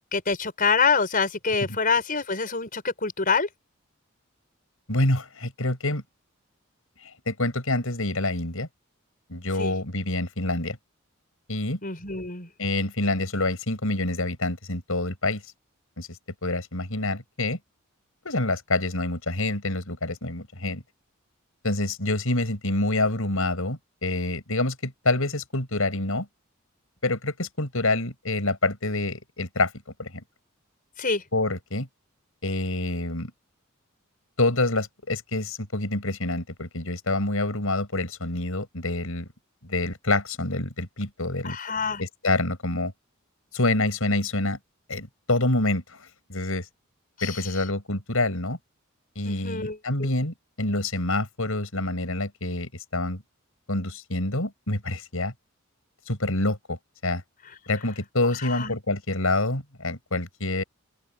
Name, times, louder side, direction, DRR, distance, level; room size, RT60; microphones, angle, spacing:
voice 1, 0.1-3.5 9.6-9.7 11.8-12.5 31.0-31.2 41.4-42.0 47.2-47.4 49.2-50.1 58.4-58.8, left 5 dB, 40° left, 5.6 m, -26 dB
voice 2, 4.9-6.0 7.0-8.7 9.3-10.8 11.5-11.8 12.6-15.4 16.0-17.6 18.2-20.8 21.6-26.3 27.0-29.7 30.0-30.2 31.3-31.9 32.4-33.3 34.4-39.3 39.6-41.6 42.0-42.9 43.5-44.6 44.9-46.7 47.2-48.6 49.2-53.2 53.7-55.3 56.1-56.8 57.0-57.2 57.7-60.6, left 2 dB, 75° left, 6.9 m, -27 dB
open air
head